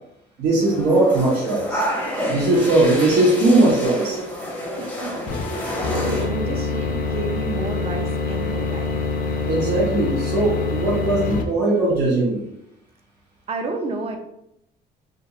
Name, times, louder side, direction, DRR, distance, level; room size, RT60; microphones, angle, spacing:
voice 1, 0.4-1.8 2.3-4.2 9.5-12.4, right 2 dB, 75° right, -5 dB, 0.8 m, -19 dB
sound 1, 0.6-6.3, equal, 10° left, 0.6 m, -29 dB
voice 2, 4.8-9.0 13.5-14.2, right 3 dB, 35° right, 3 dB, 0.4 m, -31 dB
sound 2, 5.3-11.4, left 4 dB, 55° left, 0.4 m, -25 dB
2.4 x 2.1 x 2.8 m, 0.79 s
cardioid pair, 110°, 17 cm